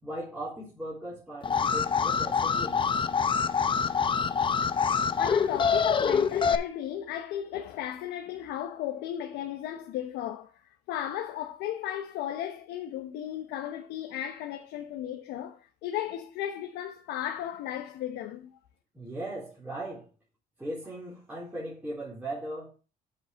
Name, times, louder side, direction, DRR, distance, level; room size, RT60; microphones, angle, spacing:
voice 1, 0.0-2.8 18.9-20.1 20.6-22.7, right 1 dB, 10° right, 3.6 m, -38 dB
Alarm, 1.4-6.6, left 6 dB, 30° left, 0.8 m, -26 dB
voice 2, 5.0-18.6, left 11 dB, 90° left, 1.0 m, -35 dB
7.9 x 5.6 x 4.6 m
cardioid pair, 110°, 17 cm